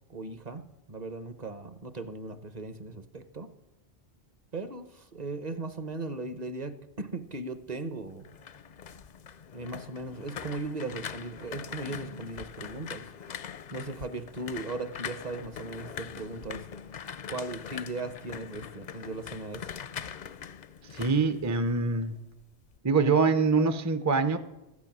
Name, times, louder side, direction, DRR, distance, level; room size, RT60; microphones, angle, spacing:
voice 1, 0.1-3.5 4.5-8.3 9.5-13.1 13.7-16.7 17.3-19.7, right 2 dB, 45° right, 11 dB, 0.8 m, -38 dB
sound 1, 8.1-22.1 22.4-22.8, left 7 dB, 55° left, 0.5 m, -42 dB
voice 2, 20.9-22.2 22.8-24.4, right 4 dB, 25° right, 10 dB, 0.4 m, -24 dB
14.0 x 9.5 x 6.0 m, 0.98 s
omnidirectional pair, 1.1 m